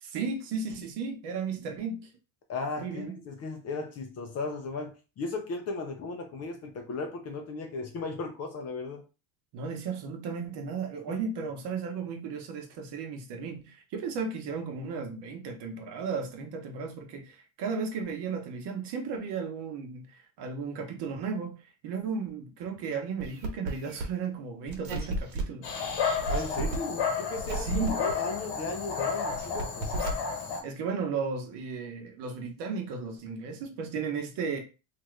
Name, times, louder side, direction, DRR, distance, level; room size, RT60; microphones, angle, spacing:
voice 1, 0.0-2.1 2.8-3.2 9.5-25.7 27.5-28.0 30.6-34.6, right 5 dB, 55° right, 0.9 m, -35 dB
voice 2, 2.5-9.0 11.1-11.2 26.2-29.9, left 3 dB, 35° left, 0.4 m, -36 dB
sound 1, 23.2-24.0 24.7-25.4 26.2-26.8 27.4-28.1 29.1-30.1, right 2 dB, 80° right, 1.1 m, -33 dB
Dog, 25.6-30.6, left 6 dB, 55° left, 1.0 m, -32 dB
2.8 x 2.5 x 3.1 m
cardioid pair, 125°, 49 cm